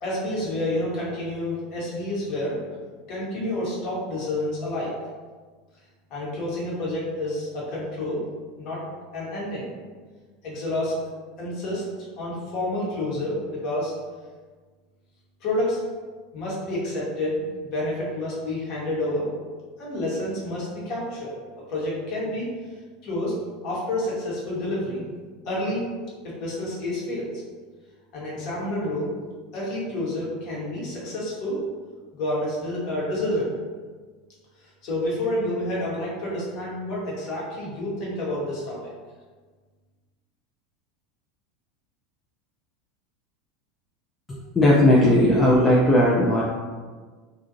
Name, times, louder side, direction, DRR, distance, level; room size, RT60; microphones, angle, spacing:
voice 1, 0.0-2.6 3.1-4.9 6.1-8.2 8.6-8.8 9.1-9.7 10.4-11.0 11.4-13.9 15.4-15.8 16.3-19.3 19.8-21.4 21.7-22.5 23.0-23.4 23.6-25.1 25.4-25.9 26.2-27.3 28.1-29.1 29.5-31.6 32.1-33.5 34.6-38.9, left 1 dB, 45° left, -5 dB, 1.0 m, -29 dB
voice 2, 44.5-46.4, left 1 dB, 20° left, -6 dB, 0.4 m, -17 dB
2.7 x 2.4 x 2.6 m, 1.4 s
figure-of-eight pair, 80°, 0 cm